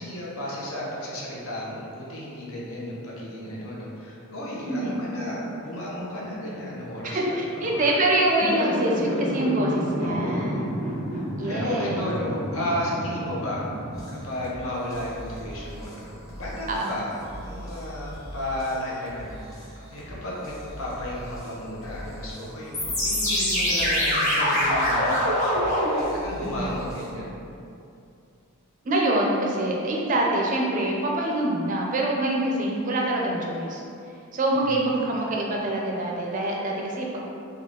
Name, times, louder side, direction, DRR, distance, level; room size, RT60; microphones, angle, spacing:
voice 1, 0.0-7.9 10.0-10.4 11.1-13.6 14.1-27.4 34.5-35.0, left 1 dB, 75° left, -5 dB, 0.8 m, -33 dB
voice 2, 4.7-5.0 7.0-10.8 11.4-12.0 16.7-17.0 26.4-26.8 28.8-33.8 34.3-37.3, right 1 dB, 35° right, -2 dB, 0.4 m, -25 dB
sound 1, 8.4-14.5 22.7-26.0, equal, 35° left, 1.0 m, -26 dB
sound 2, 13.9-27.1, equal, 15° left, 0.6 m, -42 dB
3.6 x 2.3 x 3.7 m, 2.6 s
head